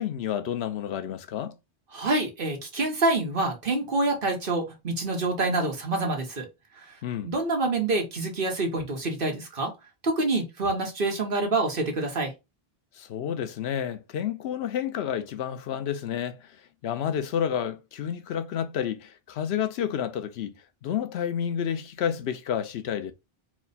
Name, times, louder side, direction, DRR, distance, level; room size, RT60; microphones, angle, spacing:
voice 1, 0.0-1.6 7.0-7.3 12.9-20.5 20.8-23.1, left 9 dB, 85° left, 0.9 m, -30 dB
voice 2, 1.9-6.5 7.2-9.7 10.0-12.3, right 2 dB, 60° right, 1.4 m, -26 dB
4.6 x 2.1 x 4.0 m
omnidirectional pair, 1.0 m